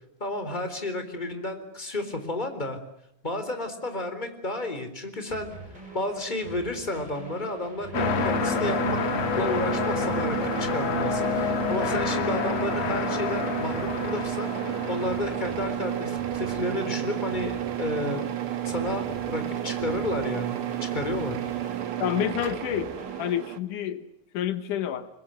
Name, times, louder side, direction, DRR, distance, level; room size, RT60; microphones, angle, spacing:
voice 1, 0.2-2.8 3.2-5.5 5.9-9.0 9.4-18.2 18.7-21.4, left 2 dB, 15° left, 3.8 m, -32 dB
sound 1, 5.3-23.3, right 2 dB, 15° right, 7.0 m, -45 dB
sound 2, 7.9-17.1 17.7-17.8, left 8 dB, 60° left, 2.4 m, -30 dB
sound 3, 7.9-23.6, right 12 dB, 55° right, 1.7 m, -31 dB
voice 2, 22.0-22.9 23.2-24.1 24.3-25.1, left 10 dB, 85° left, 2.8 m, -28 dB
30.0 x 21.5 x 7.8 m
omnidirectional pair, 3.6 m